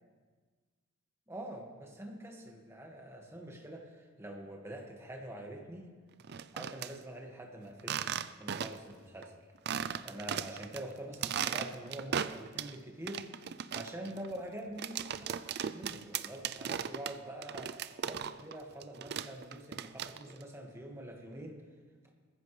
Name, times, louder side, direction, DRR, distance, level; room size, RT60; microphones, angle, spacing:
voice 1, 1.3-5.9 6.5-9.3 10.0-13.2 13.7-17.7 18.0-21.6, right 1 dB, 15° right, 1 dB, 1.8 m, -45 dB
sound 1, 6.2-6.9 7.8-8.9 9.2-9.3 9.7-10.8 11.1-12.8 13.1-18.6 18.8-20.4, right 8 dB, 55° right, 0.4 m, -37 dB
21.5 x 14.5 x 3.3 m, 1.5 s
head